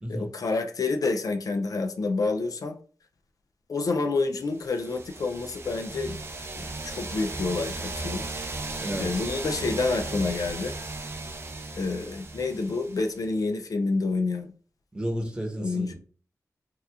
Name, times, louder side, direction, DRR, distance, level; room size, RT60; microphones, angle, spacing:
voice 1, 0.1-2.8 3.7-6.2 6.5-8.3 9.0-10.7 11.8-14.5 15.6-15.9, left 3 dB, 70° left, 0.4 m, -28 dB
sound 1, 4.6-13.3, right 2 dB, 40° right, 0.5 m, -36 dB
voice 2, 8.8-9.2 14.9-15.9, equal, 15° right, 0.8 m, -32 dB
2.9 x 2.4 x 3.3 m
wide cardioid pair, 100°, 6 cm